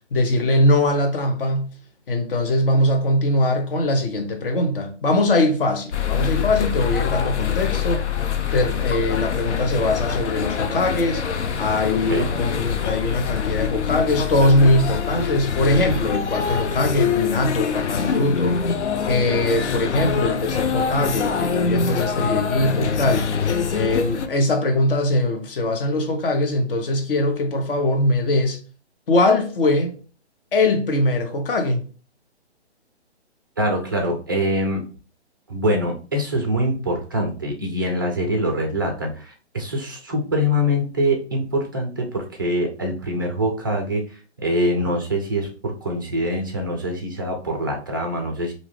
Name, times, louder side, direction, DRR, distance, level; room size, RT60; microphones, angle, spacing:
voice 1, 0.1-1.7 2.1-8.1 8.5-11.3 11.6-18.6 19.1-23.3 23.7-28.6 29.1-30.0 30.5-31.8, left 1 dB, 55° left, 0.8 m, -21 dB
sound 1, 5.9-24.3, left 6 dB, 85° left, 0.5 m, -24 dB
voice 2, 33.6-34.9 35.5-44.0 44.4-48.5, equal, 20° right, 0.3 m, -24 dB
2.6 x 2.3 x 3.2 m
hypercardioid pair, 145°, 34 cm